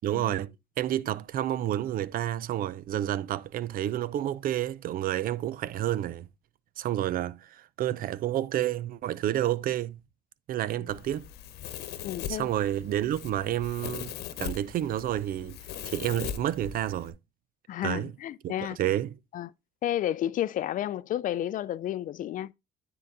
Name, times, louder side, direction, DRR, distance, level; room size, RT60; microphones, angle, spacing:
voice 1, 0.0-6.3 6.8-10.0 10.5-11.3 12.3-14.1 14.4-15.6 15.8-17.2 17.8-18.1 18.4-19.2, right 12 dB, 60° right, 0.5 m, -30 dB
Domestic sounds home sounds, 10.9-17.1, left 9 dB, 75° left, 1.0 m, -40 dB
voice 2, 12.0-12.5 17.7-18.8 19.3-19.5 19.8-22.5, left 12 dB, 50° left, 0.4 m, -31 dB
9.6 x 3.9 x 3.9 m
cardioid pair, 110°, 17 cm